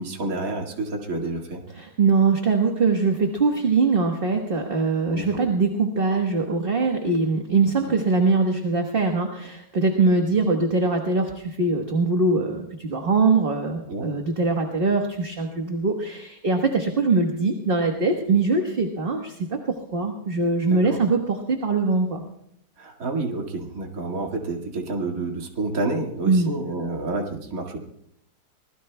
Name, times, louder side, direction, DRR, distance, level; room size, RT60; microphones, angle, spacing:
voice 1, 0.0-1.6 5.1-5.2 13.9-14.1 20.7-21.0 22.8-27.8, right 2 dB, 55° right, 1 dB, 2.4 m, -29 dB
voice 2, 1.7-19.6 19.9-22.2 26.2-26.5, right 3 dB, 35° right, 2 dB, 1.4 m, -22 dB
24.5 x 20.0 x 2.2 m, 0.76 s
omnidirectional pair, 1.8 m